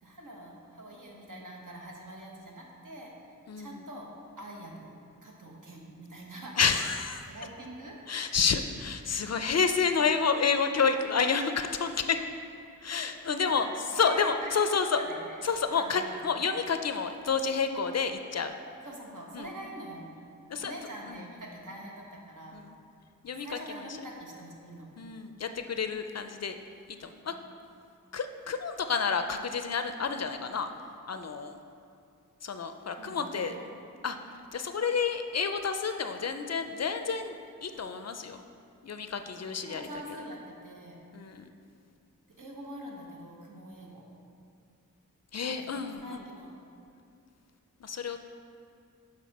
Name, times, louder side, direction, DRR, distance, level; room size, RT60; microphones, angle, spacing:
voice 1, 0.0-3.1 3.6-4.1 4.4-4.9 5.2-6.6 7.3-8.2 13.6-15.4 15.7-16.2 18.8-20.1 20.5-22.6 23.4-24.9 27.2-27.4 33.0-33.7 39.4-41.0 42.4-44.1 45.6-46.5, right 1 dB, 65° right, -2 dB, 1.2 m, -44 dB
voice 2, 3.5-3.8 6.6-7.3 8.1-12.2 12.8-13.7 14.0-15.0 15.4-18.5 19.3-19.5 20.5-20.7 21.1-21.2 22.5-22.7 23.2-23.8 25.0-26.6 27.0-27.4 28.1-30.7 31.1-31.6 32.4-33.5 34.0-38.4 38.8-39.9 41.1-41.5 45.3-46.3 47.8-48.2, left 5 dB, 50° left, 8 dB, 0.4 m, -29 dB
7.5 x 4.9 x 4.1 m, 2.4 s
wide cardioid pair, 55°, 34 cm